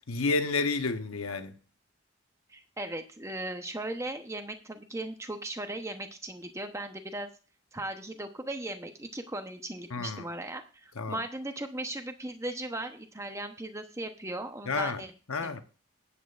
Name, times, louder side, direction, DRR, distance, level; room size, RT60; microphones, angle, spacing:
voice 1, 0.1-1.6 9.9-10.3 11.0-11.2 14.7-15.0 15.3-15.6, left 3 dB, 85° left, 1.0 m, -30 dB
voice 2, 2.5-7.3 7.7-15.1 15.4-15.6, right 1 dB, 15° right, 0.9 m, -37 dB
17.5 x 8.5 x 2.5 m
head